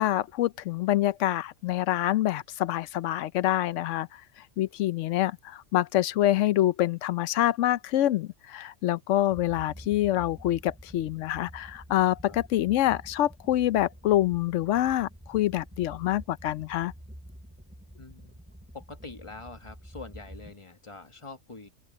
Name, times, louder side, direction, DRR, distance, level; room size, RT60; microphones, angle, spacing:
voice 1, 0.0-4.2 4.6-16.9, left 13 dB, 70° left, 0.9 m, -26 dB
sound 1, 9.3-20.5, equal, 5° right, 7.5 m, -48 dB
voice 2, 18.0-18.4 18.7-21.7, left 3 dB, 25° left, 1.2 m, -44 dB
open air
omnidirectional pair, 1.4 m